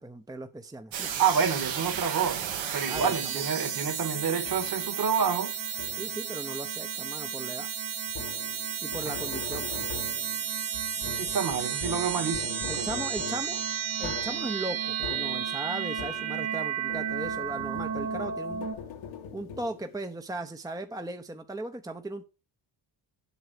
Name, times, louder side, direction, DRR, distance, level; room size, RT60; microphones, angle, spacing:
voice 1, 0.0-1.1 2.9-3.5 5.9-7.7 8.8-9.8 12.7-13.6 14.0-18.7 19.3-22.2, right 2 dB, 10° right, 0.8 m, -37 dB
sound 1, 0.9-18.8, right 8 dB, 75° right, 2.2 m, -33 dB
voice 2, 1.2-2.5 2.7-5.5 11.0-12.9, right 6 dB, 45° right, 2.1 m, -28 dB
sound 2, 2.9-3.5 4.5-4.9 5.8-6.3 8.1-16.6 16.9-20.0, left 7 dB, 90° left, 1.9 m, -42 dB
8.2 x 6.5 x 6.0 m
cardioid pair, 85°, 47 cm